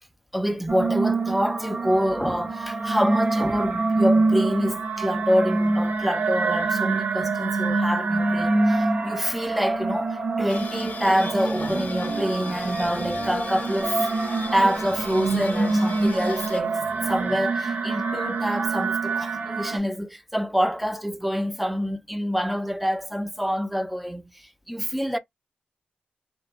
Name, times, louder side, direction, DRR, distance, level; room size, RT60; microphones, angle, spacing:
voice 1, 0.3-14.1 14.5-16.8 17.1-25.2, equal, 5° right, 0.3 m, -26 dB
sound 1, 0.7-19.8, right 3 dB, 60° right, 0.6 m, -26 dB
sound 2, 10.5-16.6, left 5 dB, 65° left, 0.4 m, -38 dB
sound 3, 10.8-17.6, right 3 dB, 85° right, 1.4 m, -41 dB
2.7 x 2.4 x 2.3 m
cardioid pair, 75°, 3 cm